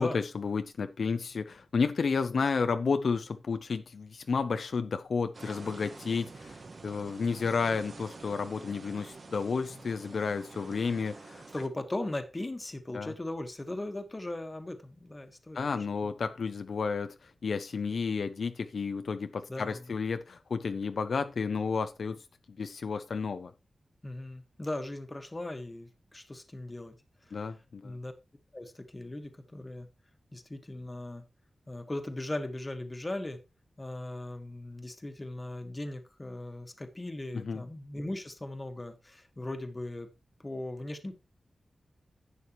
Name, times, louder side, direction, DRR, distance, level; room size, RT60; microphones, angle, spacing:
voice 1, 0.0-11.4 12.9-13.1 15.5-23.5 27.3-28.0 37.3-37.6, left 5 dB, 65° left, 0.6 m, -32 dB
sound 1, 5.3-11.7, right 3 dB, 50° right, 1.4 m, -48 dB
voice 2, 11.5-16.2 19.5-19.8 24.0-27.0 27.3-27.5 27.8-28.1 28.5-29.9 30.3-31.2 31.7-33.4 33.8-40.1 40.4-41.2, left 1 dB, 20° left, 1.4 m, -38 dB
11.0 x 8.4 x 3.0 m
wide cardioid pair, 140°, 0 cm